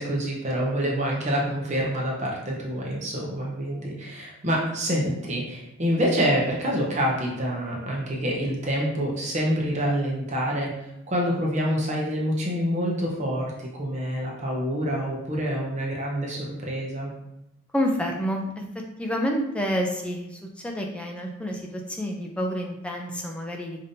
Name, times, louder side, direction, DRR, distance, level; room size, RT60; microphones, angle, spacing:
voice 1, 0.0-17.1, equal, 30° right, -3 dB, 0.7 m, -27 dB
voice 2, 17.7-18.6 19.0-23.8, equal, 5° left, 0 dB, 0.4 m, -28 dB
5.1 x 2.7 x 2.6 m, 0.85 s
head